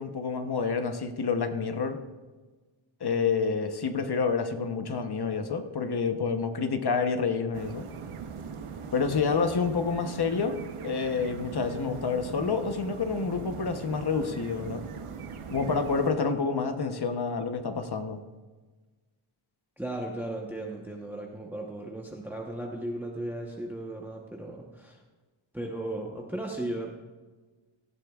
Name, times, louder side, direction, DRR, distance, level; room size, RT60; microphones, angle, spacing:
voice 1, 0.0-2.0 3.0-7.9 8.9-14.8 15.5-18.2, left 5 dB, 50° left, 7 dB, 1.0 m, -28 dB
sound 1, 7.5-16.1, right 6 dB, 85° right, 1.0 m, -40 dB
voice 2, 19.8-25.0 25.5-26.9, right 1 dB, 5° right, 0 dB, 1.0 m, -36 dB
17.5 x 11.5 x 2.4 m, 1.3 s
wide cardioid pair, 115°, 50 cm